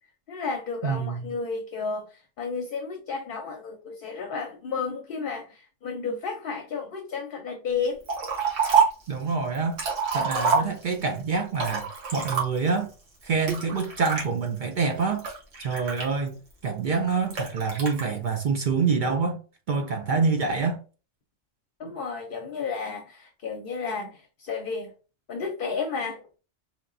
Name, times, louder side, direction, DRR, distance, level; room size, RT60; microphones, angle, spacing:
voice 1, 0.3-8.0 21.8-24.9 25.3-26.4, left 5 dB, 55° left, 0.7 m, -32 dB
voice 2, 0.8-1.3 9.1-9.8 10.1-12.9 13.2-15.3 15.6-19.4 19.7-20.8, right 5 dB, 55° right, 0.5 m, -26 dB
Liquid, 8.1-9.1 9.6-11.1 11.5-12.8 13.5-14.3 14.9-16.5 17.3-18.0, right 5 dB, 85° right, 1.6 m, -26 dB
3.6 x 2.9 x 2.5 m
omnidirectional pair, 1.3 m